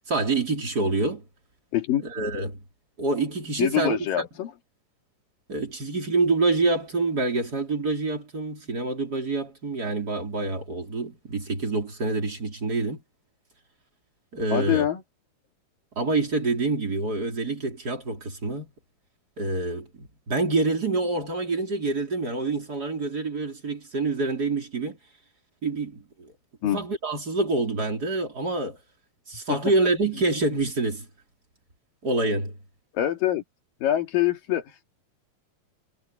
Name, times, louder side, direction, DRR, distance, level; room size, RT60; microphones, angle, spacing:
voice 1, 0.1-1.2 2.0-2.6 3.0-4.3 5.5-13.0 14.3-14.9 16.0-18.7 19.4-25.0 25.6-26.3 26.7-28.8 29.3-31.1 32.0-32.5, right 3 dB, 30° right, 4.2 m, -26 dB
voice 2, 1.7-2.0 3.6-4.5 14.5-15.0 26.6-26.9 32.9-33.4 33.8-34.8, left 12 dB, 85° left, 3.8 m, -25 dB
omnidirectional pair, 3.8 m